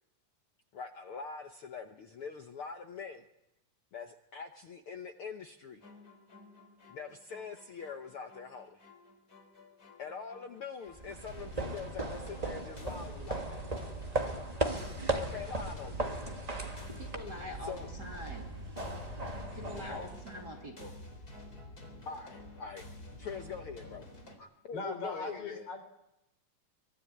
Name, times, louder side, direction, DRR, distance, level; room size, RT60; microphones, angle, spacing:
voice 1, 0.7-3.2 3.9-5.8 6.9-8.8 10.0-13.6 15.1-16.0 17.6-17.9 19.9-20.1 20.8-20.9 22.0-22.8 23.2-24.1 24.4-25.7, left 5 dB, 75° left, 5 dB, 1.2 m, -43 dB
sound 1, 5.8-24.4, left 1 dB, 25° left, 4.1 m, -50 dB
sound 2, 10.9-20.6, right 2 dB, 65° right, 0.3 m, -37 dB
voice 2, 17.0-18.5 19.5-20.9, equal, 30° right, 1 dB, 2.9 m, -44 dB
voice 3, 24.7-25.8, left 2 dB, 45° left, 6 dB, 4.7 m, -39 dB
24.0 x 18.0 x 9.9 m, 0.89 s
omnidirectional pair, 3.9 m